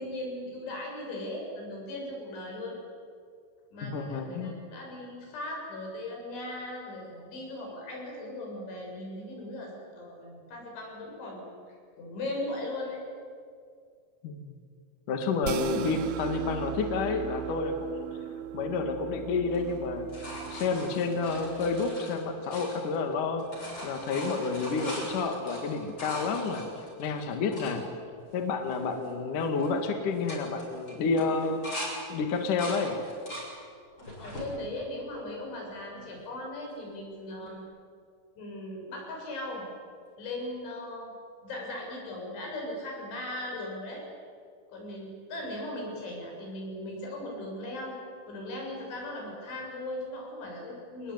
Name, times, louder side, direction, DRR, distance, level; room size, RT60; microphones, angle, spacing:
voice 1, 0.0-2.8 3.7-13.0 34.2-37.6 38.4-39.7 40.2-41.1 41.4-44.0 44.7-48.0 48.3-51.1, left 1 dB, 75° left, -1 dB, 9.3 m, -38 dB
voice 2, 3.8-4.6 14.2-14.6 15.1-17.9 18.5-23.5 23.8-26.7 27.0-27.9 28.3-31.8 32.1-33.0, left 4 dB, 50° left, 5 dB, 3.0 m, -30 dB
sound 1, 15.4-21.9, right 10 dB, 80° right, 2.1 m, -37 dB
sound 2, 19.5-23.1 23.4-27.7 28.3-28.4 28.6-29.1 29.4-29.7 30.1-31.9 32.3-33.5 34.0-34.5 35.1-35.9 37.5-37.6, equal, 25° left, 7.3 m, -41 dB
28.5 x 20.5 x 9.5 m, 2.2 s
omnidirectional pair, 5.4 m